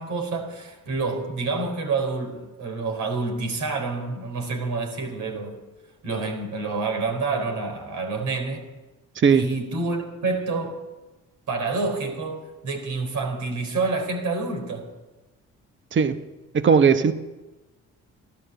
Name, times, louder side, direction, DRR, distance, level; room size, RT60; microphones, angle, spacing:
voice 1, 0.0-5.6 6.0-8.7 9.3-10.8 11.5-14.9, right 3 dB, 70° right, 4.4 m, -28 dB
voice 2, 9.2-9.5 15.9-16.2 16.5-17.1, right 6 dB, 40° right, 1.0 m, -18 dB
15.0 x 12.0 x 7.7 m
cardioid pair, 90°, 30 cm